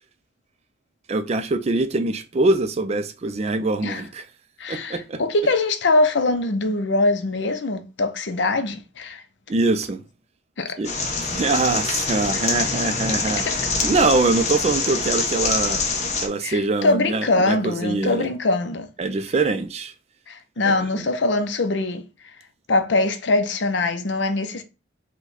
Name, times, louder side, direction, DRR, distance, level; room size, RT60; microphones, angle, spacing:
voice 1, 1.1-4.3 4.7-5.2 9.5-10.0 10.8-10.9 11.2-13.5 13.8-15.8 16.2-18.3 19.0-19.9 20.6-21.0, right 3 dB, 35° right, 0.4 m, -23 dB
voice 2, 4.6-9.2 10.6-10.8 12.3-12.6 13.3-13.5 16.4-18.9 20.3-22.0 22.7-24.6, left 2 dB, 65° left, 0.6 m, -23 dB
sound 1, 10.8-16.3, left 4 dB, 35° left, 0.8 m, -25 dB
4.8 x 2.2 x 4.0 m
head